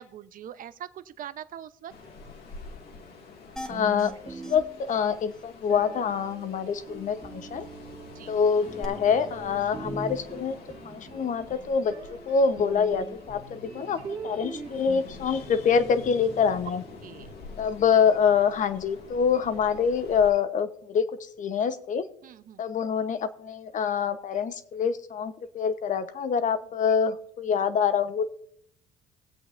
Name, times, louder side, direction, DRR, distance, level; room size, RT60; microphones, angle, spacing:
voice 1, 0.0-1.9 8.2-8.3 17.0-17.3 22.2-22.6, right 10 dB, 55° right, 13 dB, 0.8 m, -42 dB
Ocean, 1.9-20.3, left 4 dB, 70° left, 2.1 m, -47 dB
sound 1, 3.6-4.1 4.4-4.6 4.9-5.0 5.3-5.4 8.8-8.9, equal, 5° left, 1.8 m, -39 dB
voice 2, 3.7-7.7 8.3-10.6 10.8-16.8 17.6-22.0 22.6-28.2, left 6 dB, 50° left, 11 dB, 1.0 m, -26 dB
sound 2, 3.7-5.2 5.7-17.9, right 4 dB, 25° right, 2.1 m, -42 dB
19.5 x 7.9 x 2.6 m, 0.68 s
cardioid pair, 110°, 17 cm